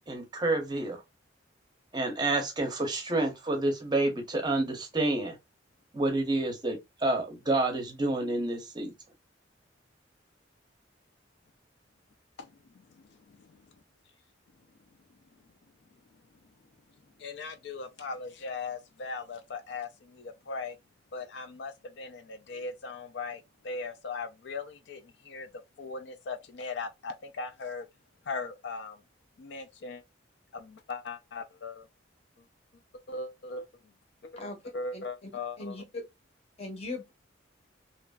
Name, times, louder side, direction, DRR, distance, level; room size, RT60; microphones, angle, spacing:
voice 1, 0.1-1.0 1.9-5.4 5.9-8.9, right 2 dB, 20° right, 0.6 m, -29 dB
voice 2, 12.9-13.6 17.2-20.8 21.1-25.5 25.8-27.9 28.3-29.0 29.4-30.0 30.5-31.9 33.1-33.7 34.2-34.3 34.7-35.8, left 4 dB, 60° left, 0.4 m, -39 dB
voice 3, 34.9-35.3 35.6-36.0 36.6-37.1, left 2 dB, 30° left, 0.7 m, -39 dB
2.8 x 2.4 x 2.2 m
head